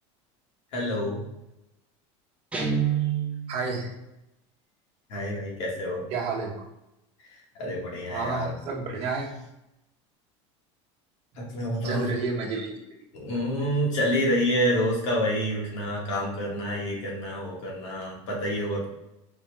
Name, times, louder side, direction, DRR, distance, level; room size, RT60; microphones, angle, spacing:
voice 1, 0.7-1.2 5.1-6.0 7.5-8.5 11.4-12.1 13.1-18.9, equal, 80° left, -2 dB, 1.4 m, -28 dB
Guitar, 2.5-3.7, right 8 dB, 5° right, 0.5 m, -27 dB
voice 2, 3.5-3.9 6.1-6.5 8.1-9.3 11.8-12.7, right 4 dB, 40° right, -1 dB, 0.9 m, -30 dB
4.1 x 2.3 x 3.0 m, 0.90 s
supercardioid pair, 140°, 15 cm